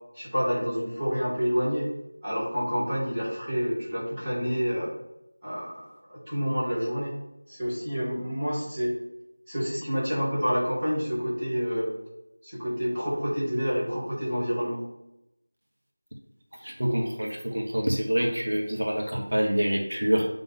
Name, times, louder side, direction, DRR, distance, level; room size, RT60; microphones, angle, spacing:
voice 1, 0.1-1.9 2.2-4.9 5.4-5.8 6.1-7.1 7.5-8.9 9.5-11.9 12.4-14.8, equal, 10° right, -14 dB, 2.2 m, -28 dB
voice 2, 16.6-20.3, equal, 70° right, 0 dB, 1.3 m, -26 dB
8.4 x 3.8 x 3.6 m, 0.90 s
figure-of-eight pair, 175°, 0 cm